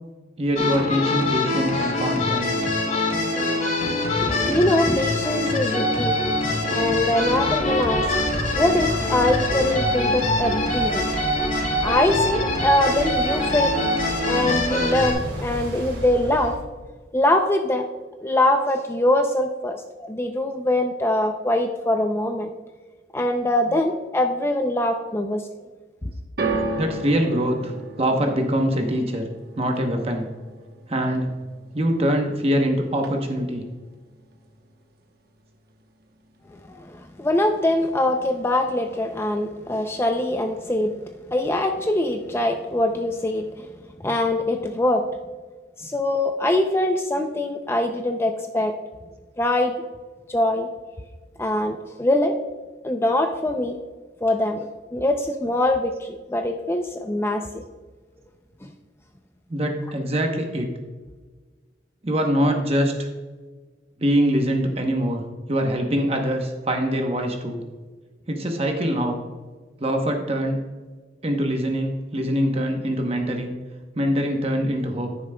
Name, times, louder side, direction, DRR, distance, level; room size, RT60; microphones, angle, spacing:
voice 1, 0.4-2.7 23.6-23.8 26.7-29.3 29.6-30.3 30.9-31.3 31.7-33.6 59.5-60.7 62.0-63.1 64.0-67.6 68.3-69.2 69.8-70.6 71.2-73.6 73.9-75.1, equal, 35° right, 3 dB, 0.8 m, -23 dB
sound 1, 0.5-15.1, left 2 dB, 45° left, 2.9 m, -24 dB
voice 2, 4.1-6.2 6.7-8.1 8.5-11.0 11.8-13.8 14.3-16.5 17.1-17.9 18.2-22.5 23.1-25.5 36.7-41.0 41.3-43.7 44.0-45.1 45.8-48.8 49.4-49.7 50.3-50.7 51.4-52.3 52.8-53.8 54.2-57.6 58.6-58.7, left 1 dB, 15° left, 5 dB, 0.4 m, -23 dB
sound 2, 6.6-16.6, right 1 dB, 80° right, 2.6 m, -34 dB
sound 3, 26.4-32.7 32.9-33.6 34.3-34.4, right 2 dB, 55° right, 1.0 m, -33 dB
11.0 x 9.6 x 2.2 m, 1.4 s
head